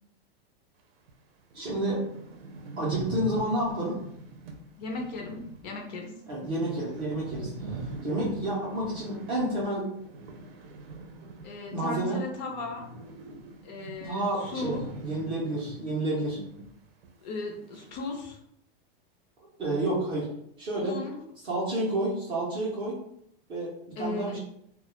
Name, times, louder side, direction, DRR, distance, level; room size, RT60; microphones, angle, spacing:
sound 1, 1.1-1.2 1.5-1.6 1.8-12.0 12.3-16.7 17.0-17.1 17.7-18.2, right 3 dB, 90° right, 0.6 m, -42 dB
voice 1, 1.5-2.1 2.8-4.0 6.3-9.9 11.7-12.2 14.0-16.4 19.6-20.3 20.6-21.0 21.4-23.0 23.5-24.4, right 1 dB, 15° right, -6 dB, 0.4 m, -30 dB
voice 2, 4.8-6.2 11.4-12.9 13.6-14.8 17.2-18.4 20.8-21.2 24.0-24.4, left 3 dB, 50° left, 2 dB, 0.5 m, -36 dB
2.2 x 2.0 x 2.9 m, 0.72 s
supercardioid pair, 165°, 29 cm